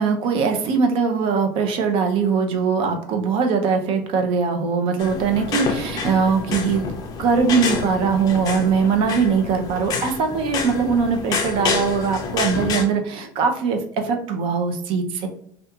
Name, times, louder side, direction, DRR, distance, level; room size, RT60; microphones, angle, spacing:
voice 1, 0.0-6.8 7.2-15.3, right 5 dB, 55° right, 5 dB, 0.5 m, -21 dB
sound 1, 5.0-12.8, left 5 dB, 35° left, 0.4 m, -28 dB
2.4 x 2.2 x 2.7 m, 0.67 s
cardioid pair, 140°, 11 cm